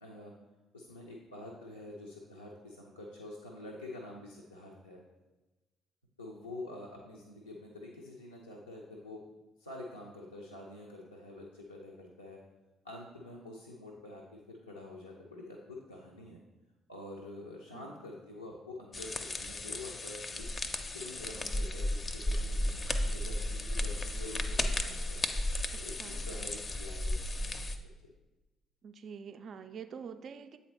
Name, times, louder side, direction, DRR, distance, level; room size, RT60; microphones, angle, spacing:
voice 1, 0.0-0.3 0.7-5.0 6.2-9.3 9.6-12.4 12.8-16.4 16.9-20.5 20.9-25.2 25.8-27.6 28.0-28.1, left 2 dB, 90° left, -3 dB, 0.4 m, -47 dB
sound 1, 18.9-27.8, left 1 dB, 35° left, 0.5 m, -34 dB
voice 2, 25.7-26.3 28.8-30.6, right 6 dB, 50° right, 9 dB, 0.3 m, -46 dB
8.0 x 4.0 x 2.9 m, 1.1 s
figure-of-eight pair, 45°, 0 cm